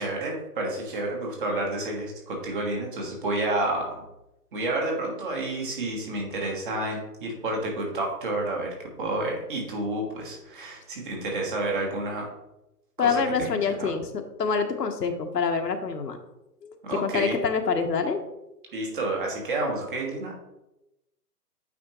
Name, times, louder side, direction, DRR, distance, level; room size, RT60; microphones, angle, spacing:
voice 1, 0.0-4.0 4.5-12.3 13.0-13.9 16.8-17.4 18.7-20.4, right 2 dB, 30° right, 0 dB, 1.5 m, -30 dB
voice 2, 13.0-16.2 16.6-18.2, left 5 dB, 85° left, 6 dB, 1.1 m, -26 dB
8.5 x 4.3 x 2.9 m, 0.93 s
hypercardioid pair, 160°, 48 cm